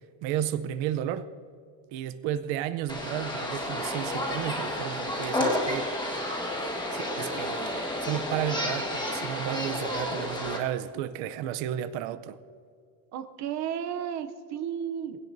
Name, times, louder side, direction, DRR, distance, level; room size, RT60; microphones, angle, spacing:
voice 1, 0.2-1.3 1.9-6.3 6.9-12.4, right 11 dB, 70° right, 0.8 m, -33 dB
sound 1, 2.9-10.6, left 1 dB, 10° left, 1.4 m, -31 dB
voice 2, 13.1-15.2, right 9 dB, 35° right, 0.6 m, -33 dB
20.5 x 16.5 x 2.6 m
cardioid pair, 165°, 50 cm